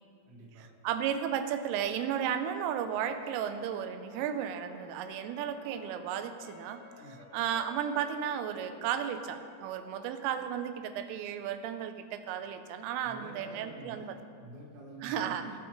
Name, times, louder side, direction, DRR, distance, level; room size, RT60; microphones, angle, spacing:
voice 1, 0.2-0.6 7.0-7.2 13.0-15.5, right 2 dB, 55° right, -7 dB, 1.7 m, -48 dB
voice 2, 0.8-6.8 7.3-14.2 15.0-15.4, right 9 dB, 90° right, 8 dB, 3.3 m, -34 dB
Brass instrument, 1.8-10.4, left 3 dB, 80° left, 1.8 m, -53 dB
18.5 x 6.3 x 4.6 m, 2.1 s
omnidirectional pair, 5.7 m